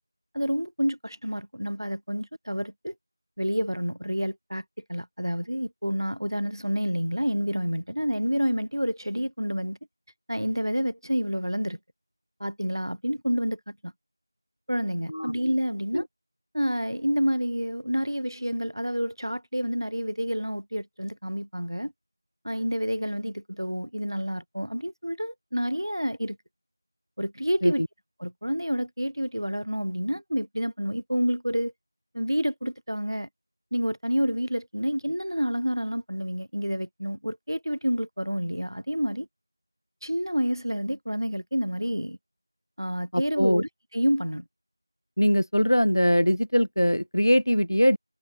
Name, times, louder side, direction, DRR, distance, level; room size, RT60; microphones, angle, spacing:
voice 1, 0.3-2.9 3.4-9.8 10.3-11.8 12.4-13.9 14.7-16.0 16.5-21.9 22.4-26.4 27.2-27.8 28.2-31.7 32.1-33.3 33.7-39.3 40.0-42.2 42.8-44.4, equal, 75° right, 4.8 m, -28 dB
voice 2, 43.1-43.6 45.2-48.0, equal, 60° left, 1.8 m, -22 dB
figure-of-eight pair, 180°, 2 cm